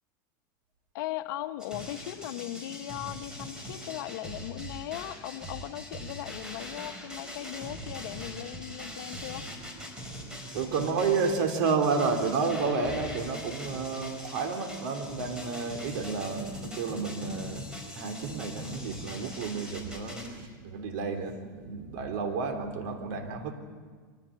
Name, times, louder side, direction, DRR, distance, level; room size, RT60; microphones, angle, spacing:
voice 1, 0.9-9.5, left 14 dB, 70° left, 10 dB, 1.1 m, -38 dB
sound 1, 1.6-20.3, equal, 5° right, 4.5 m, -42 dB
voice 2, 10.5-17.6 17.9-23.5, right 4 dB, 65° right, 5 dB, 3.5 m, -31 dB
24.0 x 15.5 x 8.7 m, 1.5 s
supercardioid pair, 135°, 11 cm